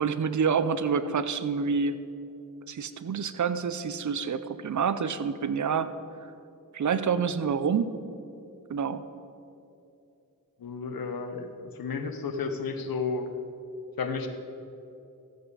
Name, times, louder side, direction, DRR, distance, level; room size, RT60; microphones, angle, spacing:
voice 1, 0.0-2.0 2.7-5.9 6.7-7.9 8.7-9.0, right 6 dB, 55° right, 12 dB, 0.6 m, -27 dB
voice 2, 10.6-11.5 11.7-13.3 14.0-14.3, left 4 dB, 80° left, 6 dB, 1.0 m, -32 dB
14.0 x 7.9 x 4.1 m, 2.7 s
cardioid pair, 55°, 35 cm